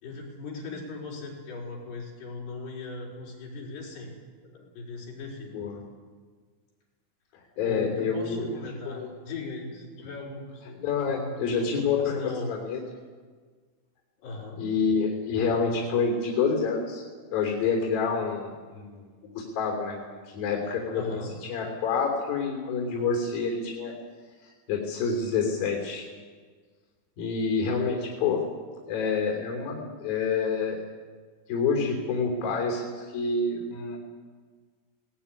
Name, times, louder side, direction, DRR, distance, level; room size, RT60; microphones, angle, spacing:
voice 1, 0.0-4.1 4.4-5.5 7.6-10.8 11.1-11.4 11.7-12.6 14.2-14.7 20.9-21.3, left 3 dB, 85° left, -3 dB, 7.0 m, -38 dB
voice 2, 5.5-5.8 7.3-8.5 8.8-9.1 10.8-12.8 14.6-17.0 17.3-20.0 20.3-23.9 24.4-26.1 27.2-28.4 28.9-30.8 31.5-34.0, left 5 dB, 65° left, 0 dB, 5.0 m, -28 dB
19.5 x 17.5 x 9.8 m, 1.5 s
omnidirectional pair, 4.6 m